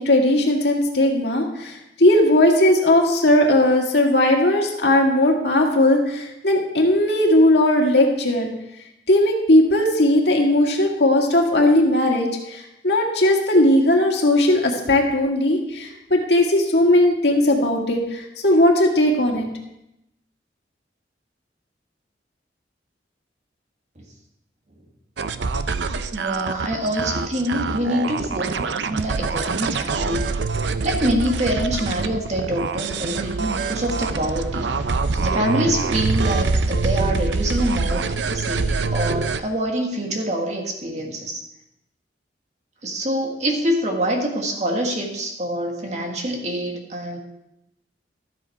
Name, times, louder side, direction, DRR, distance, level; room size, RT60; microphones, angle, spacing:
voice 1, 0.0-8.5 9.1-19.5, left 1 dB, 65° left, 1 dB, 1.9 m, -18 dB
sound 1, 25.2-39.4, right 4 dB, 80° right, 0.6 m, -25 dB
voice 2, 26.1-28.5 28.9-30.2 30.8-34.7 35.1-41.4 42.8-47.2, equal, 40° right, 1 dB, 1.7 m, -25 dB
13.0 x 7.7 x 4.6 m, 0.85 s
head